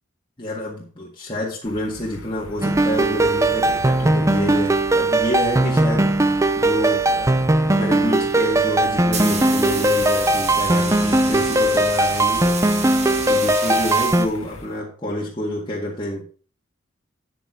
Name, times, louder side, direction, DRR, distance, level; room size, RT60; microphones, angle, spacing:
voice 1, 0.4-6.1 6.6-7.4 7.6-12.6 13.3-16.3, left 1 dB, 20° left, -4 dB, 1.8 m, -28 dB
sound 1, 1.6-14.7, left 2 dB, 75° left, 1.3 m, -40 dB
sound 2, 2.6-14.3, right 1 dB, 15° right, 0.5 m, -19 dB
sound 3, 8.8-14.8, right 5 dB, 30° right, 1.4 m, -32 dB
9.1 x 7.1 x 4.8 m, 0.41 s
head